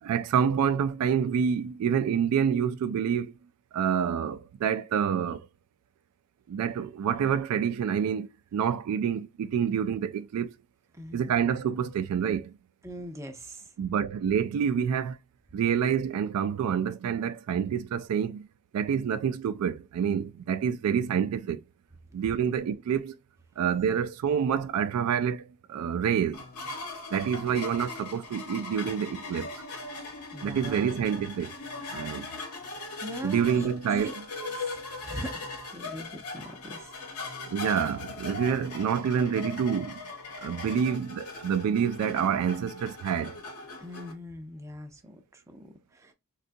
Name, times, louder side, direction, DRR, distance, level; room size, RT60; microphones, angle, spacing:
voice 1, 0.0-3.3 3.7-5.5 6.5-10.5 11.1-12.5 13.8-15.2 15.5-18.5 18.7-21.6 22.1-23.2 23.6-26.4 27.1-29.5 30.4-31.5 31.9-32.3 33.2-34.2 37.4-40.1 40.4-43.4, right 7 dB, 85° right, 0.3 m, -27 dB
voice 2, 10.9-11.3 12.8-13.7 30.3-31.0 33.0-36.9 43.8-46.1, right 1 dB, 15° right, 0.5 m, -42 dB
sound 1, 26.3-44.1, left 3 dB, 85° left, 1.0 m, -40 dB
3.7 x 2.3 x 2.5 m
head